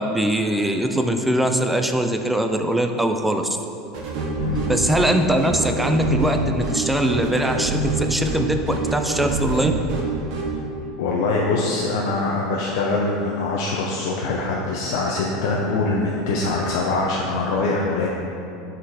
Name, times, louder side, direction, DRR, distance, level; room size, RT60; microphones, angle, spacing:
voice 1, 0.0-3.5 4.7-9.7, right 1 dB, 5° right, 5 dB, 0.3 m, -21 dB
sound 1, 3.9-10.5, right 2 dB, 50° right, 1.2 m, -26 dB
voice 2, 4.4-4.7 11.0-18.1, left 3 dB, 70° left, -3 dB, 0.7 m, -23 dB
7.7 x 4.2 x 4.1 m, 2.7 s
supercardioid pair, 165°, 2 cm